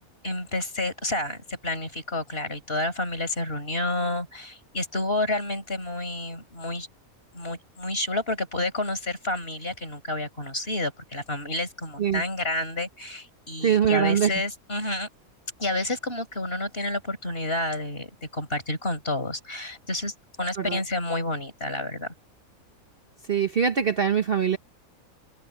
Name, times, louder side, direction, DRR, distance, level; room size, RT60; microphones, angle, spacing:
voice 1, 0.2-6.9 7.3-15.1 15.6-22.1, left 2 dB, 40° left, 5.6 m, -30 dB
voice 2, 13.6-14.4 20.6-20.8 23.3-24.6, right 8 dB, 45° right, 1.0 m, -23 dB
omnidirectional pair, 1.5 m